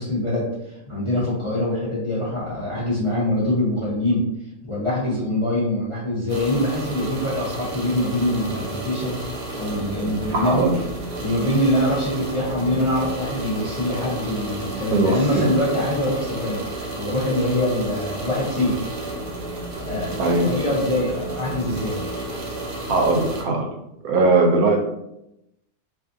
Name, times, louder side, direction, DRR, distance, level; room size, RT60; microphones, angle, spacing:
voice 1, 0.0-4.3 4.6-9.2 9.6-10.7 11.2-16.6 16.9-18.8 19.8-22.0, left 1 dB, 30° left, -9 dB, 0.6 m, -24 dB
sound 1, 6.3-23.4, right 1 dB, 60° right, 0.5 m, -32 dB
voice 2, 10.3-10.7 14.9-15.5 20.2-20.5 22.9-23.7 24.0-24.8, right 3 dB, 80° right, 2 dB, 1.0 m, -19 dB
2.6 x 2.4 x 2.5 m, 0.86 s
omnidirectional pair, 1.5 m